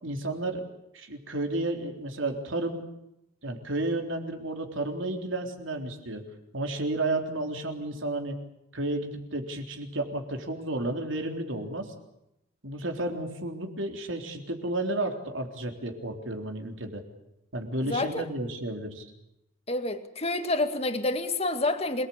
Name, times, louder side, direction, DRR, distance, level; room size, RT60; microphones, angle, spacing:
voice 1, 0.0-0.7 0.9-2.8 3.4-6.2 6.5-8.3 8.7-11.9 12.6-17.0 17.5-19.1, right 2 dB, 70° right, 3.7 m, -32 dB
voice 2, 17.8-18.3 19.7-22.1, left 2 dB, 30° left, 1.9 m, -28 dB
27.0 x 19.5 x 8.7 m
head